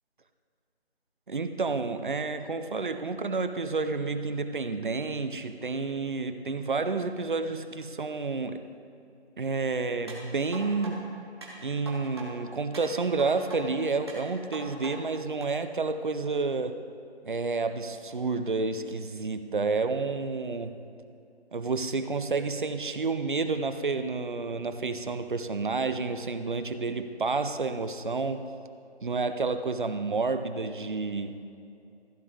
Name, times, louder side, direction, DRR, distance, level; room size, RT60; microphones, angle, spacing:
voice 1, 1.3-8.6 9.4-11.0 11.6-16.8 17.2-20.7 21.5-28.5 29.0-31.4, right 4 dB, 50° right, 9 dB, 0.6 m, -30 dB
sound 1, 10.1-10.9 11.4-12.3 12.7-13.6 14.1-14.9 15.4-15.5, right 2 dB, 25° right, 1.4 m, -42 dB
15.0 x 7.0 x 3.8 m, 2.6 s
figure-of-eight pair, 175°, 33 cm